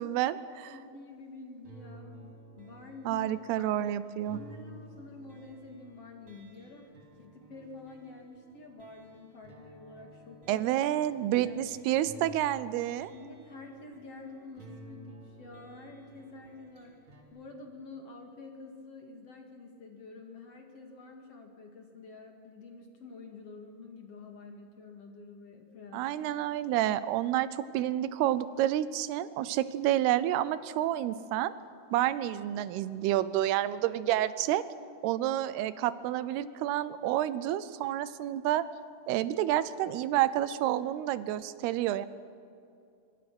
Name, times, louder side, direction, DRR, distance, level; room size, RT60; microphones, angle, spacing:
voice 1, 0.0-0.7 3.1-4.4 10.5-13.1 25.9-31.5 31.9-34.7 35.0-38.7 39.1-42.1, right 13 dB, 85° right, 15 dB, 2.7 m, -29 dB
voice 2, 0.6-3.3 3.6-3.8 4.3-10.7 11.2-11.6 13.1-17.0 17.3-26.1, left 3 dB, 45° left, 3 dB, 2.5 m, -48 dB
sound 1, 1.6-17.2, right 1 dB, 35° right, 3.5 m, -54 dB
24.5 x 24.5 x 6.1 m, 2.5 s
omnidirectional pair, 4.6 m